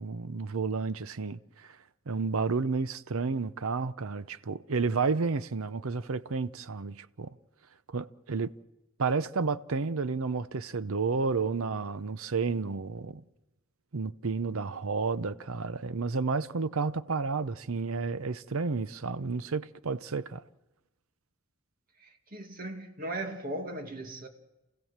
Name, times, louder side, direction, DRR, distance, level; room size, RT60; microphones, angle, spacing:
voice 1, 0.0-1.4 2.1-7.3 7.9-8.5 9.0-13.2 13.9-20.4, right 4 dB, 80° right, 0.7 m, -31 dB
voice 2, 22.0-24.3, right 1 dB, 40° right, 2.2 m, -38 dB
28.0 x 15.5 x 7.4 m
head